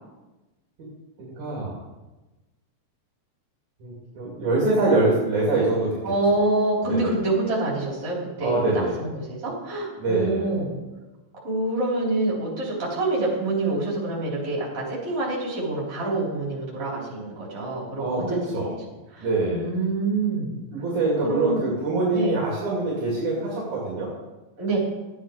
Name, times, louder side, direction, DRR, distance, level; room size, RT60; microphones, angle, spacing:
voice 1, 1.2-1.8 3.8-6.1 6.8-7.1 8.4-9.0 10.0-10.5 18.0-18.7 19.2-19.7 20.7-24.1, right 2 dB, 65° right, -5 dB, 3.7 m, -24 dB
voice 2, 6.0-10.8 11.4-18.7 19.1-20.6 21.2-21.6 22.1-22.4 24.6-24.8, right 2 dB, 45° right, -5 dB, 5.1 m, -26 dB
13.5 x 9.3 x 4.8 m, 1.1 s
omnidirectional pair, 3.8 m